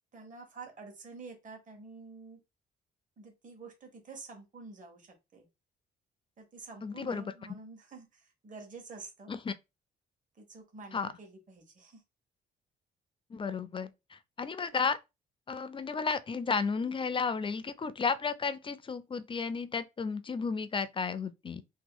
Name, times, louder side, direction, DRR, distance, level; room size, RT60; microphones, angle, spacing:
voice 1, 0.1-2.4 3.2-5.5 6.4-9.3 10.3-12.0, right 4 dB, 40° right, 1.3 m, -48 dB
voice 2, 6.8-7.3 9.3-9.5 10.9-11.1 13.3-15.0 15.5-21.6, left 5 dB, 25° left, 0.4 m, -33 dB
3.0 x 2.2 x 3.7 m
cardioid pair, 90°, 20 cm